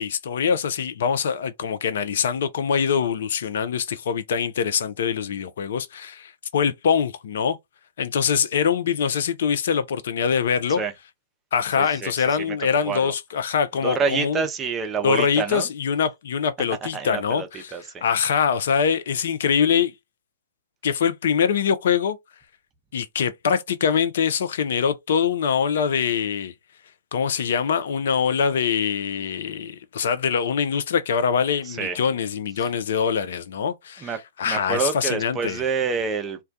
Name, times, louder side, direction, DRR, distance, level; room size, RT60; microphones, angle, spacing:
voice 1, 0.0-7.6 8.0-10.8 11.5-14.4 15.0-17.7 18.0-19.9 20.8-22.2 22.9-26.5 27.1-34.1 34.4-35.6, left 7 dB, 55° left, 0.4 m, -23 dB
voice 2, 11.8-12.6 12.8-13.1 13.8-15.7 16.8-18.0 31.6-32.0 32.6-32.7 34.0-36.4, right 5 dB, 20° right, 0.5 m, -28 dB
2.2 x 2.1 x 2.6 m
figure-of-eight pair, 115°, 0 cm